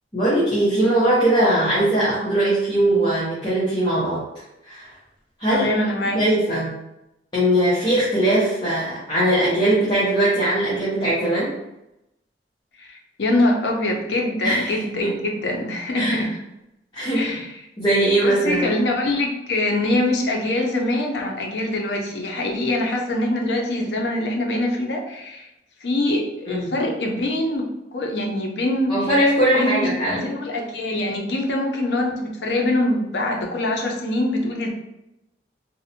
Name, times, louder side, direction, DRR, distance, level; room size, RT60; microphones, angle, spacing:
voice 1, 0.1-4.2 4.7-4.9 5.4-5.7 6.1-6.8 7.3-11.5 14.4-15.2 15.9-16.2 16.9-17.3 17.8-18.7 26.5-26.7 28.9-30.2, right 1 dB, 25° left, -10 dB, 0.6 m, -20 dB
voice 2, 5.5-6.2 12.8-16.3 17.1-17.6 18.2-25.5 25.8-27.7 27.9-29.1 29.5-34.7, left 1 dB, 75° left, 1 dB, 0.5 m, -24 dB
2.5 x 2.1 x 2.7 m, 0.88 s
head